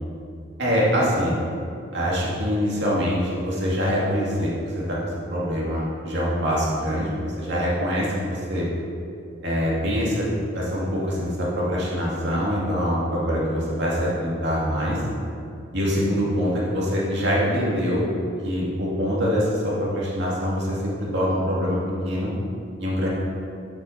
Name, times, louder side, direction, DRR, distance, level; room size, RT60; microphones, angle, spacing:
voice 1, 0.6-1.3 1.9-5.0 5.3-8.7 9.4-10.3 10.5-15.0 15.7-18.1 18.4-22.3 22.8-23.1, equal, 65° right, -5 dB, 2.3 m, -24 dB
7.4 x 5.9 x 5.9 m, 2.4 s
head